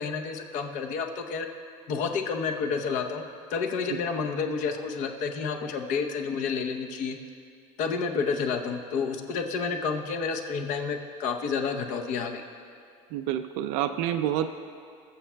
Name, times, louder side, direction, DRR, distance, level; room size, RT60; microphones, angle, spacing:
voice 1, 0.0-1.5 1.9-3.2 3.5-7.2 7.8-12.4, left 5 dB, 55° left, 4 dB, 0.8 m, -30 dB
voice 2, 13.1-14.5, right 11 dB, 75° right, 7 dB, 0.4 m, -28 dB
21.0 x 7.2 x 2.3 m, 2.2 s
cardioid pair, 135°, 15 cm